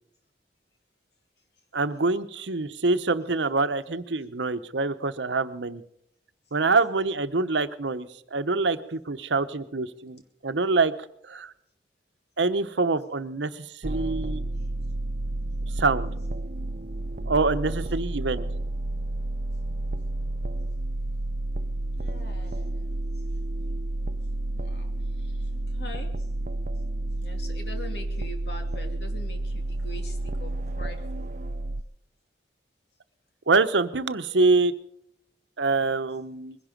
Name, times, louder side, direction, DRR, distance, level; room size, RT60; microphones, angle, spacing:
voice 1, 1.7-5.8 6.5-10.9 11.2-11.5 12.4-14.4 15.8-16.1 17.3-18.4 33.5-34.7 35.6-36.6, right 3 dB, 90° right, 11 dB, 0.9 m, -25 dB
sound 1, 13.8-31.8, right 1 dB, 45° right, 0.6 m, -31 dB
voice 2, 22.0-23.2 24.5-26.3 27.2-31.3, left 1 dB, 70° left, 4 dB, 2.7 m, -44 dB
21.5 x 11.0 x 5.2 m, 0.74 s
head